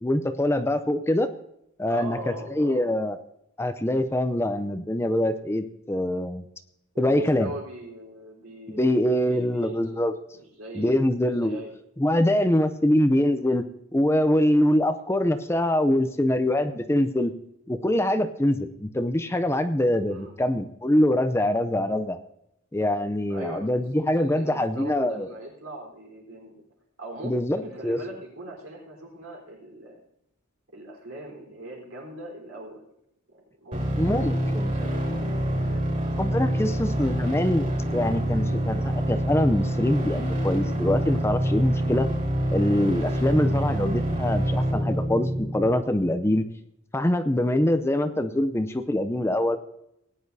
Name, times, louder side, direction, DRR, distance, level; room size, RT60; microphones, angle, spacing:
voice 1, 0.0-1.3 1.8-3.2 3.6-6.4 7.0-7.5 8.7-10.1 10.7-11.6 12.0-13.6 13.9-17.3 17.7-22.2 22.7-25.3 27.2-28.0 34.0-34.7 36.2-42.1 42.5-46.5 46.9-49.6, left 1 dB, 10° left, 10 dB, 0.5 m, -24 dB
voice 2, 1.9-3.0 6.9-10.0 10.3-11.1 11.4-11.7 20.1-20.4 23.3-23.8 24.2-26.6 27.0-27.3 27.6-30.0 30.7-32.9 33.3-35.9 36.6-36.8, right 1 dB, 75° right, -1 dB, 4.1 m, -41 dB
sound 1, 33.7-45.7, equal, 35° right, 3.8 m, -26 dB
18.5 x 10.0 x 2.7 m, 0.80 s
head